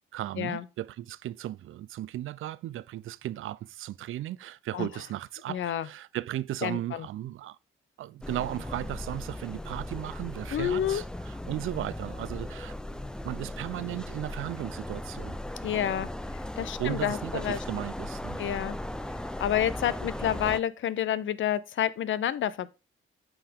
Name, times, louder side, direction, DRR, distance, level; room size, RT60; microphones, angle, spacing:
voice 1, 0.1-7.6 8.0-15.4 16.8-18.4, right 14 dB, 70° right, 0.4 m, -36 dB
voice 2, 5.5-5.9 6.6-7.1 10.5-11.0 15.6-17.6 18.4-18.8 19.1-22.7, left 10 dB, 65° left, 0.6 m, -29 dB
sound 1, 8.2-20.6, left 1 dB, 5° left, 0.5 m, -37 dB
8.8 x 4.8 x 3.6 m
cardioid pair, 85°, 21 cm